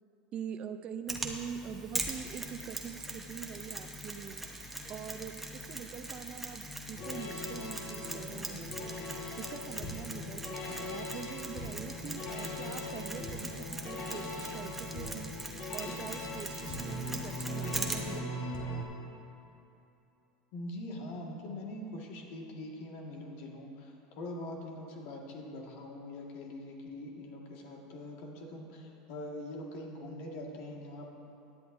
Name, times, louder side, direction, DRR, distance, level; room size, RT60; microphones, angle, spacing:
voice 1, 0.3-4.4 4.9-8.9 9.4-15.3 15.7-18.3, right 8 dB, 40° right, 9 dB, 0.5 m, -44 dB
Mechanisms, 1.1-18.2, right 1 dB, 5° right, 1.0 m, -41 dB
sound 1, 6.9-18.8, left 1 dB, 50° left, 1.6 m, -40 dB
voice 2, 20.5-31.1, left 1 dB, 65° left, 0 dB, 1.8 m, -43 dB
16.5 x 10.5 x 2.7 m, 2.8 s
supercardioid pair, 120°, 3 cm